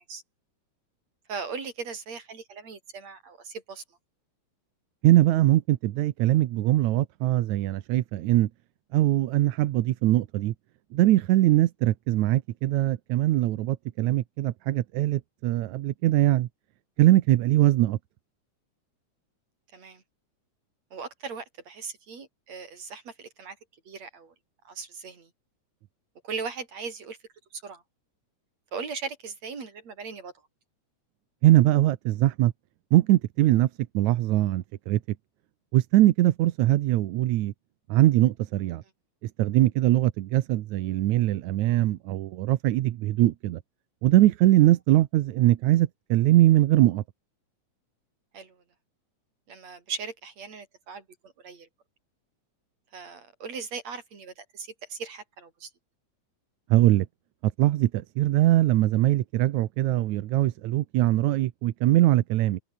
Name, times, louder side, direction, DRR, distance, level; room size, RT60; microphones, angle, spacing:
voice 1, 1.3-3.8 19.7-20.0 20.9-23.6 23.9-24.3 24.7-25.3 26.2-27.2 27.5-27.8 28.7-30.3 48.3-48.6 49.5-51.7 52.9-55.7, right 5 dB, 60° right, 5.4 m, -38 dB
voice 2, 5.0-8.5 8.9-10.5 10.9-16.5 17.0-18.0 31.4-32.5 32.9-33.7 33.9-35.0 35.7-37.5 37.9-38.8 39.2-43.6 44.0-47.0 56.7-57.1 57.6-62.6, right 15 dB, 80° right, 2.2 m, -22 dB
open air
omnidirectional pair, 3.4 m